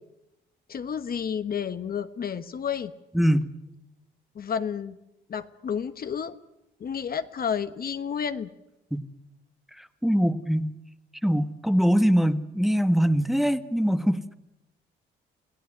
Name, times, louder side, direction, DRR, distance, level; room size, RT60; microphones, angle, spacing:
voice 1, 0.7-2.9 4.3-5.0 5.3-6.4 6.8-8.5, left 7 dB, 50° left, 11 dB, 1.2 m, -31 dB
voice 2, 3.1-3.4 8.9-9.0 10.0-10.7 11.2-14.2, equal, ahead, 10 dB, 1.4 m, -22 dB
28.0 x 17.0 x 9.9 m, 0.90 s
cardioid pair, 90°, 20 cm